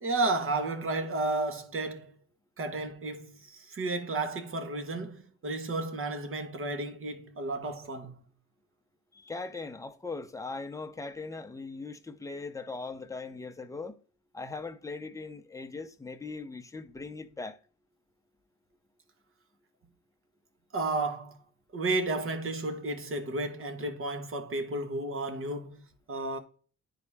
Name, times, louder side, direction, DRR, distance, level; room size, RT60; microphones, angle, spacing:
voice 1, 0.0-2.1 2.6-8.2 20.7-21.4 21.7-25.8 26.1-26.4, right 2 dB, 45° right, 1.3 m, -32 dB
voice 2, 9.1-14.0 14.3-17.6, left 3 dB, 10° left, 0.7 m, -40 dB
9.7 x 4.0 x 3.5 m
cardioid pair, 90°, 30 cm